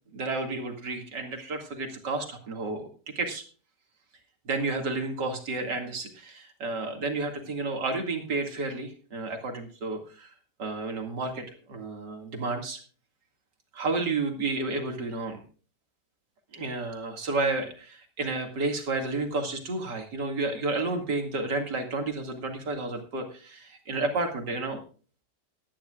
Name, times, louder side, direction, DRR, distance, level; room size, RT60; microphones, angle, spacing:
voice 1, 0.1-2.9 3.2-3.4 4.5-10.3 10.6-12.8 13.7-15.4 16.5-24.8, right 3 dB, 75° right, 4 dB, 2.8 m, -31 dB
18.5 x 12.0 x 2.4 m, 0.38 s
omnidirectional pair, 1.9 m